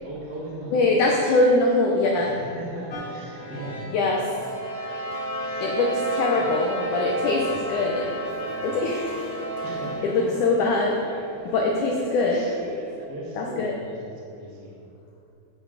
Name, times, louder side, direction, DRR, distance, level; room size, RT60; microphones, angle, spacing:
voice 1, 0.0-0.9 2.2-3.8 5.4-5.7 6.3-6.5 7.2-7.4 8.1-8.8 9.6-10.5 12.3-12.6 13.1-14.8, right 1 dB, 35° right, -6 dB, 1.7 m, -39 dB
voice 2, 0.7-2.3 3.9-4.3 5.6-9.2 10.0-11.0 11.5-12.5 13.4-13.7, left 2 dB, 70° left, -1 dB, 2.0 m, -23 dB
sound 1, 2.9-10.9, right 2 dB, 50° left, 1.5 m, -32 dB
sound 2, 7.5-13.1, right 1 dB, 65° right, 1.6 m, -41 dB
14.0 x 6.9 x 5.1 m, 2.8 s
omnidirectional pair, 4.7 m